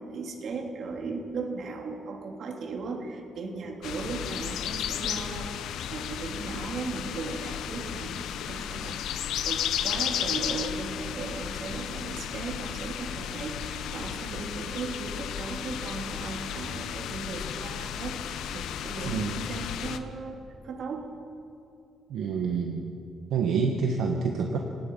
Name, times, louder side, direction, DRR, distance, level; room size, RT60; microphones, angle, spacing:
voice 1, 0.0-21.2, right 4 dB, 65° right, 2 dB, 3.3 m, -37 dB
sound 1, 3.8-20.0, left 9 dB, 80° left, 1.0 m, -34 dB
voice 2, 19.0-19.4 22.1-22.9 23.3-24.6, right 5 dB, 80° right, 2 dB, 1.6 m, -27 dB
27.0 x 18.0 x 5.7 m, 2.7 s
cardioid pair, 90°, 0 cm